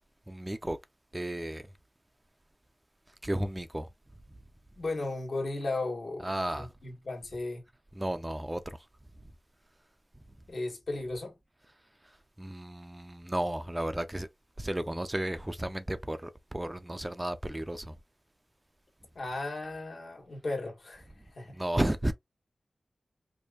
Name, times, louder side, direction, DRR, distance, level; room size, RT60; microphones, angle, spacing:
voice 1, 0.3-0.8 1.1-1.7 3.1-3.9 6.2-6.7 7.9-8.9 9.2-9.3 10.1-10.2 12.0-14.3 14.6-18.0 21.5-22.1, right 1 dB, 15° right, 0.4 m, -33 dB
voice 2, 4.8-6.3 6.5-7.6 10.5-11.4 19.1-21.6, left 2 dB, 65° left, 1.5 m, -35 dB
4.5 x 2.6 x 2.4 m
wide cardioid pair, 110°, 0 cm